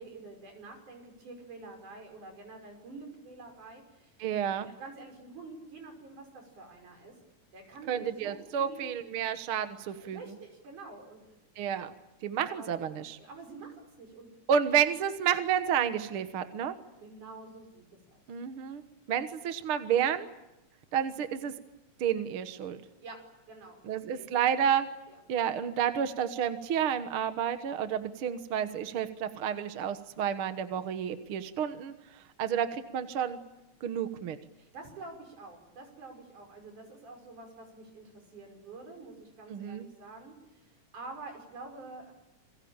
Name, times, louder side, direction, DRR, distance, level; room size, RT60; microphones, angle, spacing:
voice 1, 0.0-4.2 4.5-7.1 7.5-8.9 10.0-11.4 12.4-12.7 13.2-14.5 17.0-18.2 23.0-23.2 23.5-24.8 25.1-25.2 34.6-42.1, right 3 dB, 75° right, 3 dB, 7.2 m, -48 dB
voice 2, 4.2-4.7 7.9-10.2 11.6-11.9 12.2-13.2 14.5-16.7 18.3-18.8 19.1-20.3 20.9-21.5 22.0-22.8 23.9-24.9 25.3-33.4 33.8-34.4 39.5-39.9, right 8 dB, 55° right, 9 dB, 1.8 m, -30 dB
29.0 x 22.5 x 8.9 m, 0.93 s
omnidirectional pair, 3.6 m